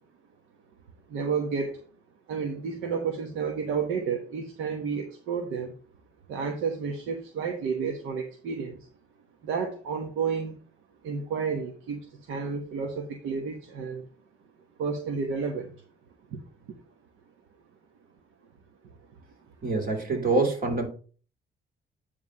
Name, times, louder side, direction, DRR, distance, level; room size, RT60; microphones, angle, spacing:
voice 1, 1.1-1.8 2.3-5.7 6.3-8.8 9.4-10.6 11.0-14.1 14.8-15.7 16.3-16.4, right 5 dB, 85° right, 3 dB, 1.2 m, -31 dB
voice 2, 19.6-20.9, right 3 dB, 45° right, 2 dB, 3.0 m, -25 dB
9.4 x 3.5 x 5.5 m, 0.40 s
cardioid pair, 90°, 20 cm